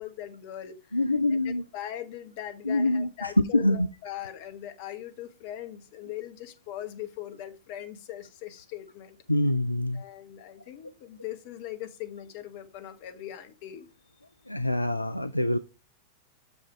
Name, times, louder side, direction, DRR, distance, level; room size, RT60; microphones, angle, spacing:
voice 1, 0.0-1.0 1.3-9.2 9.9-13.9, left 12 dB, 50° left, 9 dB, 1.1 m, -40 dB
voice 2, 0.9-1.6 2.6-3.9 9.3-10.0 14.5-15.6, left 1 dB, 85° left, 12 dB, 0.4 m, -25 dB
6.5 x 5.4 x 4.5 m, 0.30 s
figure-of-eight pair, 90°, 0 cm